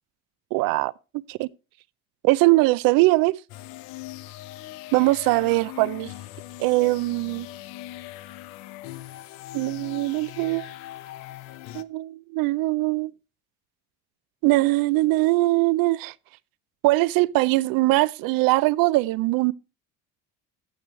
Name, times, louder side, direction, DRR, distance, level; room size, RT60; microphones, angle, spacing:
voice 1, 0.5-0.9 1.3-1.5 2.2-3.4 4.9-6.1 6.6-7.5 9.5-10.7 11.7-13.1 14.4-16.1 16.8-19.5, right 20 dB, 70° right, 0.5 m, -21 dB
sound 1, 3.5-11.8, left 15 dB, 85° left, 0.7 m, -40 dB
15.0 x 6.2 x 3.1 m
cardioid pair, 125°, 35 cm